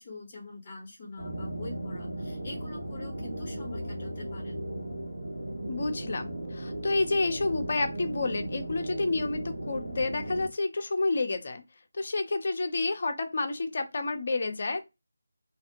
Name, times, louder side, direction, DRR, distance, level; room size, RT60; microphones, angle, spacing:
voice 1, 0.0-4.6, left 2 dB, 25° left, 1.0 m, -44 dB
sound 1, 1.2-10.5, right 1 dB, 75° right, 1.1 m, -36 dB
voice 2, 5.7-11.6 11.9-14.8, left 3 dB, 45° left, 0.7 m, -29 dB
2.5 x 2.4 x 2.9 m
figure-of-eight pair, 160°, 0 cm